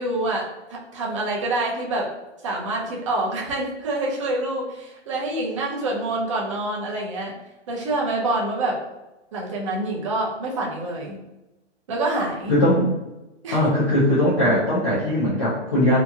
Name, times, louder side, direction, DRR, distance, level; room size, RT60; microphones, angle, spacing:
voice 1, 0.0-2.1 2.4-7.3 7.7-8.8 9.3-11.2 11.9-12.6 13.4-13.6, right 2 dB, 25° right, -2 dB, 0.5 m, -26 dB
voice 2, 12.5-12.9 13.5-16.0, left 1 dB, 25° left, -9 dB, 0.4 m, -20 dB
2.9 x 2.5 x 2.2 m, 1.0 s
hypercardioid pair, 155°, 35 cm